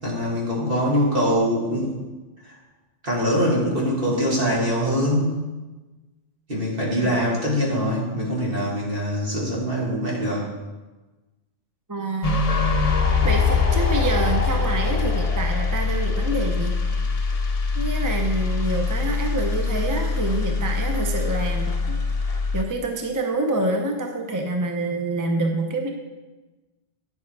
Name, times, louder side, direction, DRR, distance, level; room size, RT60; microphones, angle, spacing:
voice 1, 0.0-1.9 2.4-2.6 3.0-5.4 6.5-10.5, equal, 60° right, -5 dB, 2.7 m, -23 dB
voice 2, 11.9-12.4 13.2-16.7 17.7-22.0 22.5-25.9, right 2 dB, 20° right, 3 dB, 0.7 m, -27 dB
sound 1, 12.2-22.6, left 4 dB, 40° left, 0.8 m, -23 dB
9.9 x 7.4 x 4.7 m, 1.2 s
omnidirectional pair, 1.1 m